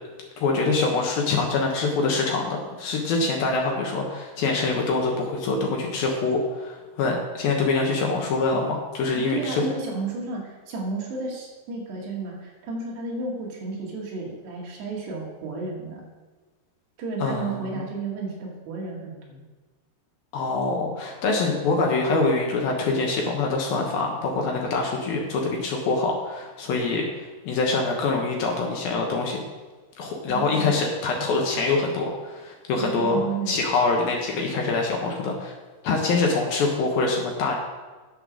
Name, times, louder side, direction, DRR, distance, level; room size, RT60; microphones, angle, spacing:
voice 1, 0.4-9.6 17.2-17.8 20.3-27.1 27.5-29.4 30.0-33.2 33.5-35.5 35.8-37.6, left 3 dB, 65° left, 1 dB, 2.8 m, -25 dB
voice 2, 9.2-16.0 17.0-19.4 30.3-30.8 32.8-33.6, right 4 dB, 70° right, -3 dB, 4.4 m, -32 dB
10.5 x 7.7 x 6.4 m, 1.3 s
omnidirectional pair, 5.1 m